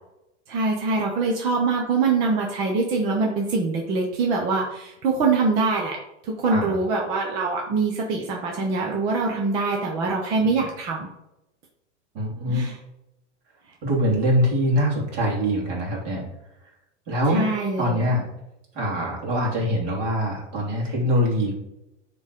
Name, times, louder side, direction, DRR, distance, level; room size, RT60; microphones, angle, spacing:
voice 1, 0.5-6.0 6.2-11.1 12.5-12.8 17.3-18.1, right 3 dB, 15° right, 0 dB, 0.3 m, -24 dB
voice 2, 12.1-12.6 13.8-16.2 17.1-17.4 17.8-18.3 18.7-21.5, equal, 40° right, -3 dB, 3.1 m, -23 dB
9.6 x 3.7 x 4.9 m, 0.89 s
supercardioid pair, 165°, 35 cm